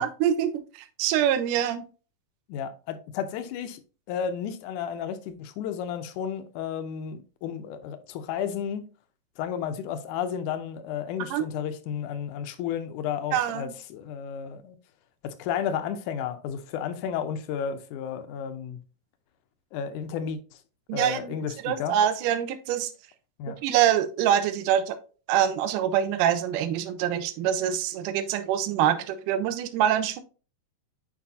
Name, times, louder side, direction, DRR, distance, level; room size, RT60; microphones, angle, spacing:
voice 1, 0.0-1.8 11.3-11.5 13.3-13.7 20.9-21.4 21.6-22.9 23.6-25.0 25.3-30.2, right 10 dB, 80° right, 2.2 m, -25 dB
voice 2, 2.5-3.8 4.1-8.9 9.4-14.8 15.2-18.8 19.7-20.4 20.9-22.0 23.4-23.6, left 8 dB, 75° left, 1.9 m, -32 dB
8.4 x 4.8 x 2.7 m
omnidirectional pair, 3.9 m